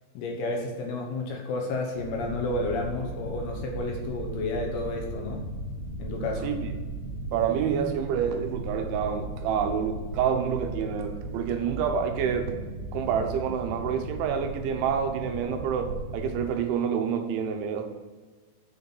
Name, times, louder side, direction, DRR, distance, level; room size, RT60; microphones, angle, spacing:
voice 1, 0.1-5.5 6.0-6.6, left 2 dB, 65° left, 0 dB, 3.0 m, -31 dB
sound 1, 1.9-16.5, right 1 dB, 45° right, 2.7 m, -37 dB
voice 2, 7.3-12.5 12.9-17.8, right 7 dB, 85° right, 5 dB, 3.4 m, -28 dB
8.3 x 6.4 x 7.2 m, 1.4 s
omnidirectional pair, 5.3 m